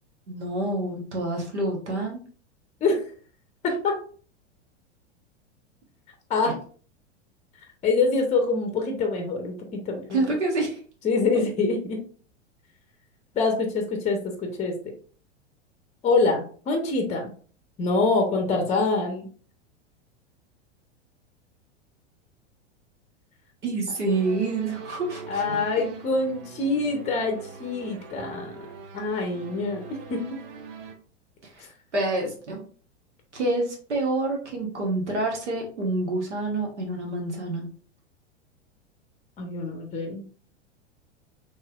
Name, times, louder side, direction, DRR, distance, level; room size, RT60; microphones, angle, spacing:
voice 1, 0.3-2.2 6.5-6.6 10.1-10.8 23.6-25.6 31.9-32.6 33.3-37.7, right 2 dB, 80° right, 0 dB, 1.0 m, -27 dB
voice 2, 3.6-4.0 6.3-6.6 7.8-9.5 9.9-10.2 11.0-12.0 13.3-14.2 14.6-14.7 16.0-17.3 17.8-19.3 25.3-28.6 28.9-30.4 39.4-40.2, left 3 dB, 20° left, 4 dB, 0.6 m, -25 dB
sound 1, 24.1-30.9, right 5 dB, 40° right, 0.6 m, -42 dB
3.1 x 2.9 x 2.3 m, 0.43 s
figure-of-eight pair, 90°, 35 cm